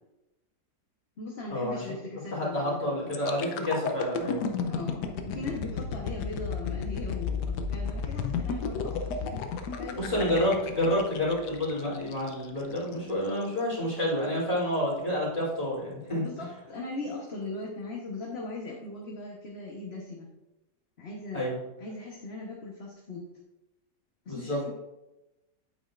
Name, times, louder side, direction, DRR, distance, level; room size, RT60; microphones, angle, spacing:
voice 1, 1.2-3.1 4.6-10.4 16.1-20.3 21.0-21.4 21.8-23.2 24.2-24.7, left 3 dB, 40° left, -2 dB, 1.2 m, -39 dB
voice 2, 2.3-4.5 9.9-16.2 21.3-21.6 24.3-24.6, left 1 dB, 20° left, -6 dB, 3.1 m, -29 dB
sound 1, 3.1-12.9 13.4-13.6, left 5 dB, 75° left, 1.3 m, -33 dB
8.8 x 8.6 x 2.5 m, 0.96 s
omnidirectional pair, 1.8 m